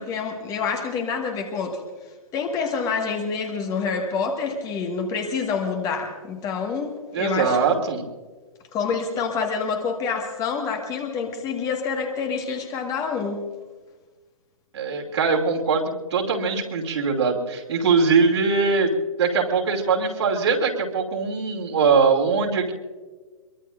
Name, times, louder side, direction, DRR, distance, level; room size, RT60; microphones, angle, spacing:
voice 1, 0.0-1.8 2.3-7.6 8.7-13.4, left 5 dB, 20° left, 3 dB, 1.7 m, -27 dB
voice 2, 7.1-8.0 14.7-22.7, right 4 dB, 50° right, 1 dB, 2.8 m, -22 dB
23.0 x 23.0 x 2.6 m, 1.3 s
figure-of-eight pair, 125°, 18 cm